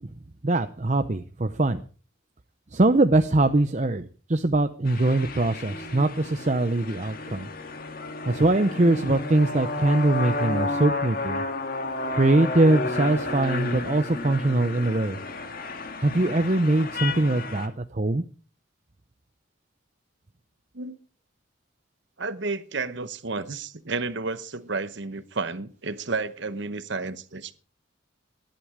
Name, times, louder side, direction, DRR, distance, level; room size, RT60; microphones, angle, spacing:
voice 1, 0.4-1.8 2.7-7.5 8.3-11.4 12.1-15.2 16.0-18.2, right 2 dB, 35° right, 9 dB, 0.7 m, -22 dB
sound 1, 4.9-17.7, left 3 dB, 45° left, 2.0 m, -32 dB
voice 2, 22.2-27.5, right 3 dB, 60° right, 14 dB, 1.0 m, -31 dB
19.0 x 12.0 x 5.0 m, 0.40 s
head